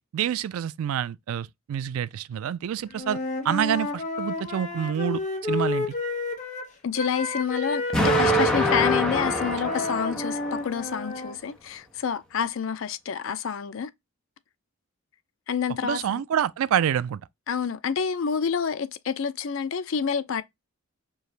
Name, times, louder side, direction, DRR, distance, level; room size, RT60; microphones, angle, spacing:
voice 1, 0.1-3.2 3.4-5.9 15.8-17.2, right 9 dB, 80° right, 0.3 m, -27 dB
Wind instrument woodwind instrument, 3.0-6.7 7.0-11.3, left 1 dB, 35° left, 1.0 m, -29 dB
voice 2, 6.8-13.9 15.5-16.0 17.5-20.4, left 7 dB, 65° left, 0.4 m, -28 dB
Explosion, 7.9-10.9, left 1 dB, 5° left, 1.0 m, -26 dB
4.6 x 2.4 x 3.2 m
head